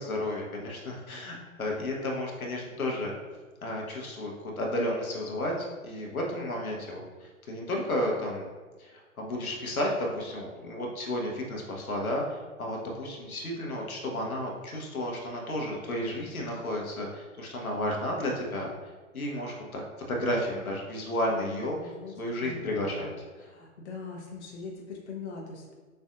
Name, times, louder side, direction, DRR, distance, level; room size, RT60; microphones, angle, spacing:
voice 1, 0.0-3.1 3.6-8.5 8.8-18.7 19.1-19.8 20.1-21.9 22.2-23.1, left 1 dB, 75° left, -1 dB, 1.0 m, -32 dB
voice 2, 21.3-25.7, left 4 dB, 50° left, -1 dB, 0.8 m, -43 dB
6.6 x 2.6 x 2.4 m, 1.4 s
figure-of-eight pair, 110°, 43 cm